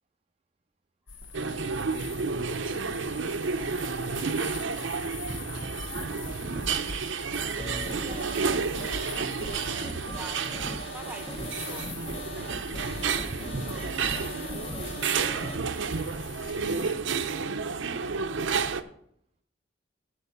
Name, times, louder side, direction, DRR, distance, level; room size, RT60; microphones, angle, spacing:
sound 1, 1.1-17.0, left 5 dB, 75° left, 1.2 m, -44 dB
voice 1, 1.1-1.4 10.1-13.8 14.3-14.8, right 2 dB, 10° right, 7 dB, 0.8 m, -48 dB
sound 2, 1.3-18.8, right 5 dB, 75° right, 0.6 m, -31 dB
voice 2, 5.0-8.7 12.9-14.4 18.3-18.8, right 2 dB, 30° right, 5 dB, 0.4 m, -42 dB
sound 3, 7.6-15.6, equal, 30° left, 0.8 m, -40 dB
11.0 x 4.5 x 7.1 m, 0.70 s
head